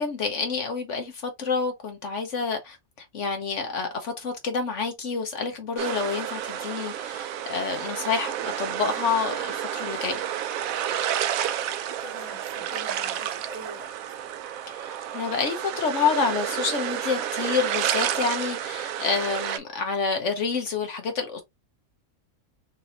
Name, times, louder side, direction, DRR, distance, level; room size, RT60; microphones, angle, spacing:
voice 1, 0.0-2.8 3.1-10.2 15.1-21.4, left 5 dB, 60° left, 1.2 m, -28 dB
sound 1, 5.8-19.6, right 10 dB, 80° right, 1.0 m, -30 dB
voice 2, 11.9-14.2, equal, 20° left, 1.8 m, -44 dB
4.0 x 3.3 x 2.6 m
omnidirectional pair, 1.4 m